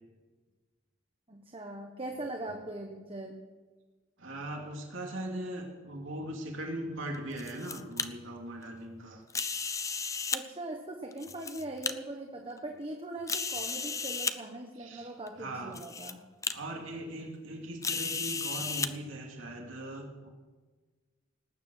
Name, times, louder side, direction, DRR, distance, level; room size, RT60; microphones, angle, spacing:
voice 1, 1.3-3.3 10.3-16.2, right 2 dB, 30° right, 2 dB, 1.3 m, -41 dB
voice 2, 4.2-9.2 14.7-15.1 15.4-15.8 16.5-20.3, right 1 dB, 75° right, 0 dB, 2.8 m, -39 dB
sound 1, 7.1-8.1 9.3-10.4 11.1-11.9 12.6-12.7 13.3-14.3 15.3-15.4 15.7-16.1 16.4-16.5 17.8-18.9, left 5 dB, 15° left, 0.6 m, -34 dB
19.0 x 9.6 x 6.5 m, 1.3 s
head